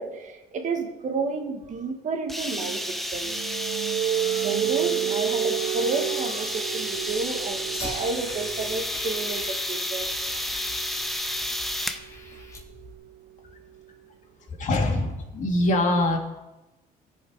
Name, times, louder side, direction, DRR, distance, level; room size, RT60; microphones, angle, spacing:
voice 1, 0.0-2.8 3.1-3.3 4.4-10.1, right 4 dB, 45° right, 4 dB, 1.9 m, -31 dB
sound 1, 2.3-12.0, left 1 dB, ahead, 0.8 m, -31 dB
sound 2, 2.4-14.0, right 12 dB, 75° right, 0.6 m, -33 dB
Fire, 6.9-12.9, left 1 dB, 20° left, 2.9 m, -43 dB
voice 2, 14.6-16.2, left 1 dB, 45° left, 1 dB, 2.4 m, -23 dB
16.5 x 5.6 x 4.9 m, 1.0 s
cardioid pair, 110°, 17 cm